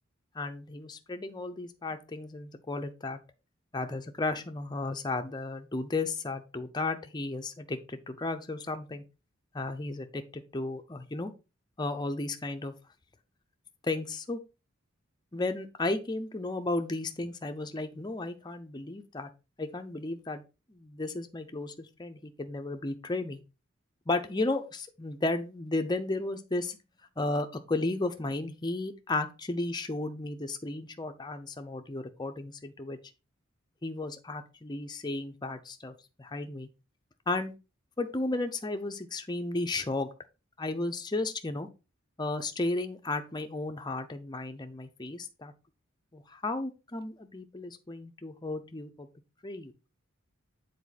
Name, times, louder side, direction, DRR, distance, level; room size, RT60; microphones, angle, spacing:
voice 1, 0.3-3.2 3.7-9.0 9.5-11.3 11.8-12.7 13.8-14.4 15.3-19.3 19.6-20.4 20.7-23.4 24.1-26.8 27.2-33.0 33.8-36.7 37.3-37.5 38.0-40.1 40.6-41.7 42.2-45.5 46.1-49.1 49.4-49.7, left 2 dB, 20° left, 6 dB, 0.7 m, -34 dB
7.2 x 4.2 x 4.1 m, 0.30 s
head